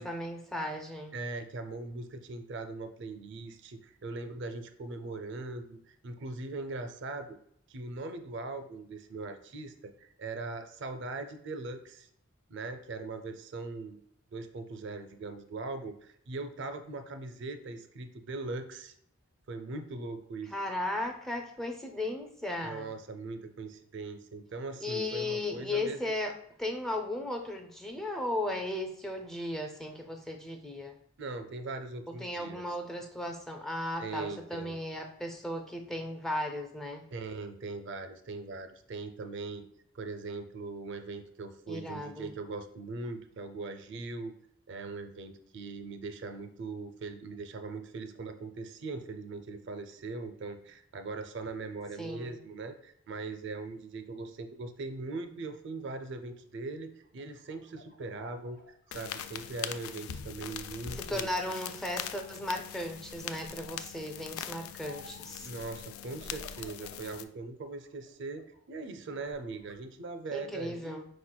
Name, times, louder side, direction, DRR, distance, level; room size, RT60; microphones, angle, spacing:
voice 1, 0.0-1.2 20.5-22.9 24.8-26.3 26.6-31.0 32.2-37.0 41.7-42.3 52.0-52.3 60.9-65.5 70.3-71.1, left 1 dB, ahead, 3 dB, 0.4 m, -36 dB
voice 2, 1.1-7.4 7.7-12.1 12.5-14.0 14.3-18.9 19.5-20.5 22.6-26.0 31.2-32.6 34.0-34.8 37.1-39.7 39.9-44.3 44.7-61.3 65.4-71.0, right 3 dB, 60° right, 8 dB, 0.5 m, -40 dB
sound 1, 57.0-60.2 60.6-61.5 61.9-62.5 63.5-64.1 64.8-65.4 66.1-67.2 67.7-68.6 69.1-69.8, left 1 dB, 45° left, 0.7 m, -54 dB
sound 2, 58.9-67.2, left 9 dB, 85° left, 0.3 m, -42 dB
4.7 x 4.3 x 2.2 m, 0.70 s
head